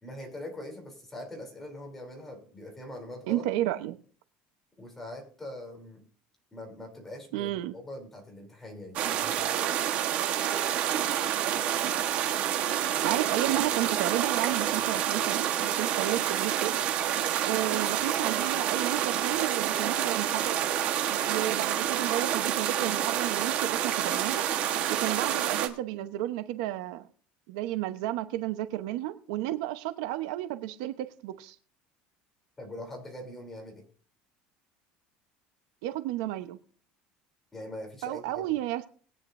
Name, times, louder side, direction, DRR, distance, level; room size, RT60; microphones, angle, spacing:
voice 1, 0.0-3.4 4.8-6.0 6.5-9.4 32.6-33.8 37.5-38.5, left 1 dB, 10° left, 1 dB, 3.2 m, -42 dB
voice 2, 3.3-4.0 7.3-7.8 13.0-16.7 17.4-20.6 21.3-24.4 24.9-27.1 27.5-31.5 35.8-36.6 38.0-38.9, right 14 dB, 85° right, 10 dB, 0.9 m, -32 dB
sound 1, 9.0-25.7, right 10 dB, 45° right, 1.3 m, -28 dB
20.5 x 9.7 x 2.6 m, 0.44 s
cardioid pair, 170°, 3 cm